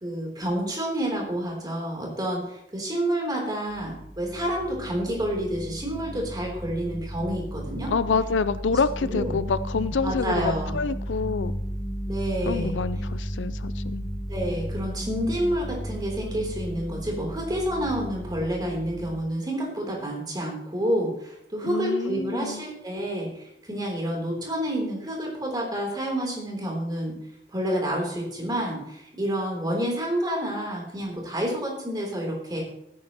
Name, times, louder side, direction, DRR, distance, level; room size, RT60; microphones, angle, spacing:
voice 1, 0.0-7.9 8.7-9.4 10.0-10.7 12.1-12.7 14.3-27.2 27.5-32.6, right 1 dB, 25° right, -1 dB, 3.3 m, -29 dB
sound 1, 3.7-19.2, equal, 20° left, 1.6 m, -34 dB
voice 2, 7.9-11.5 12.5-14.1 21.6-22.7, left 5 dB, 85° left, 14 dB, 0.5 m, -27 dB
17.0 x 9.4 x 3.0 m, 0.78 s
head